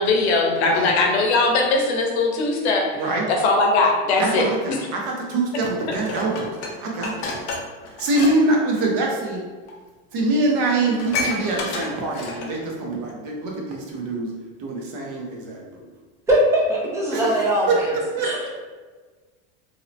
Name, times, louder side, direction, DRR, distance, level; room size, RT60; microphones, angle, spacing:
voice 1, 0.0-2.9 3.3-4.4, left 3 dB, 90° left, 2 dB, 0.6 m, -20 dB
voice 2, 2.9-3.3 4.2-6.5 6.8-7.4 8.0-9.4 10.1-14.3 14.6-15.9 17.1-17.8 18.2-18.5, right 2 dB, 55° right, -1 dB, 0.7 m, -24 dB
Dishes pots and pans, 5.9-8.3 8.6-8.9 9.7-9.8 10.1-10.2 10.4-12.6 13.1-13.2, left 4 dB, 40° left, 0.5 m, -31 dB
voice 3, 16.3-17.9 18.2-18.5, equal, 10° right, -6 dB, 0.4 m, -21 dB
2.7 x 2.0 x 2.7 m, 1.4 s
supercardioid pair, 155°, 32 cm